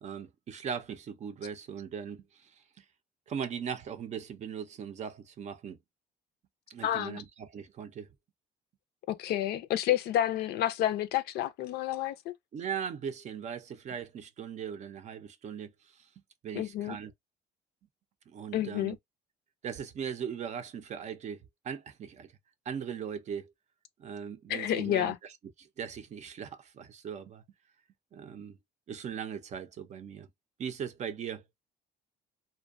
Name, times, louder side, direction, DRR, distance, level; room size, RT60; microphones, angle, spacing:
voice 1, 0.0-2.8 3.3-5.8 6.7-8.1 12.5-16.1 16.4-17.1 18.3-19.0 19.6-22.3 22.7-23.5 24.0-25.3 25.6-27.4 28.1-28.6 28.9-30.3 30.6-31.4, right 7 dB, 45° right, 0.5 m, -39 dB
voice 2, 6.8-7.2 9.1-12.3 16.6-17.0 18.5-19.0 24.5-25.2, left 12 dB, 75° left, 0.4 m, -30 dB
2.5 x 2.2 x 2.4 m
cardioid pair, 110°, 17 cm